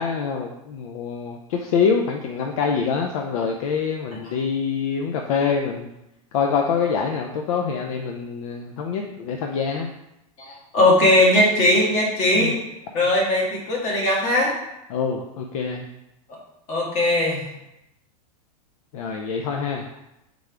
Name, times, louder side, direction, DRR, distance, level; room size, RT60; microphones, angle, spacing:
voice 1, 0.0-5.9 6.3-9.9 12.4-12.5 14.9-15.9 18.9-20.0, left 6 dB, 65° left, 3 dB, 0.5 m, -25 dB
voice 2, 10.4-12.6 12.9-14.5 16.7-17.5, left 1 dB, 40° left, -3 dB, 1.4 m, -19 dB
3.7 x 3.4 x 3.4 m, 0.89 s
supercardioid pair, 140°, 19 cm